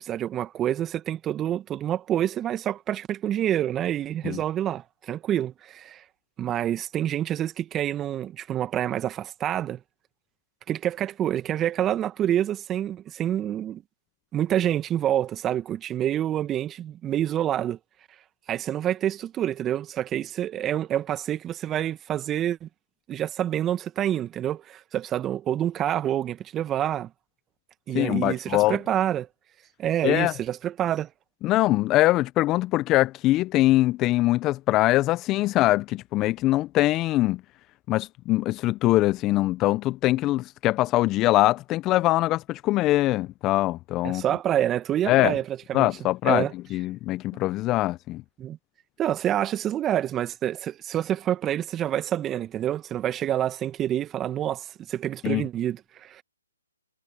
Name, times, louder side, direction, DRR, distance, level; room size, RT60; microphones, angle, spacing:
voice 1, 0.0-6.0 6.4-9.8 10.7-13.8 14.3-17.8 18.5-22.7 23.1-27.1 27.9-29.3 29.8-31.1 44.0-45.9 46.2-46.5 48.4-48.6 49.0-56.2, right 11 dB, 15° right, 2.0 m, -27 dB
voice 2, 27.9-28.8 30.0-30.3 31.4-37.4 37.9-44.2 45.1-45.3 45.7-46.4 46.7-48.2 55.2-55.4, left 17 dB, 20° left, 1.0 m, -23 dB
figure-of-eight pair, 140°, 0 cm